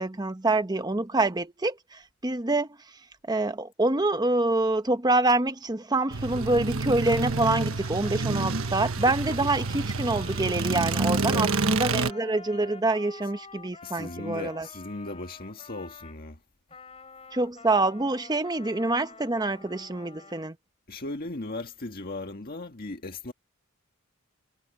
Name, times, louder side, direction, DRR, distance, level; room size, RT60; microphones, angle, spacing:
voice 1, 0.0-2.7 3.3-14.7 17.3-20.6, right 2 dB, 20° right, 1.0 m, -26 dB
Trumpet, 6.0-16.2 16.7-20.5, left 4 dB, 30° left, 7.8 m, -48 dB
sound 1, 6.1-12.1, right 3 dB, 75° right, 1.3 m, -28 dB
voice 2, 11.2-11.6 13.8-16.4 20.9-23.3, left 2 dB, 45° left, 1.7 m, -37 dB
head